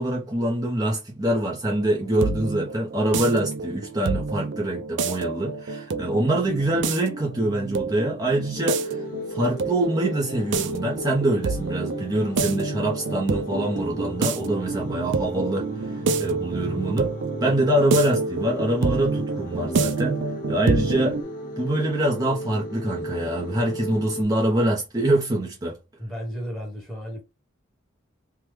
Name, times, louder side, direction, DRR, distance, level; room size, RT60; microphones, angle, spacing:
voice 1, 0.0-9.0 9.3-17.1 17.4-20.2 20.5-21.2 21.6-25.8, right 1 dB, 20° right, 0.7 m, -25 dB
sound 1, 1.8-21.2, right 4 dB, 65° right, 0.4 m, -28 dB
sound 2, 8.6-24.2, equal, 45° left, 0.9 m, -36 dB
voice 2, 26.0-27.2, equal, ahead, 1.1 m, -33 dB
3.4 x 2.2 x 3.1 m
head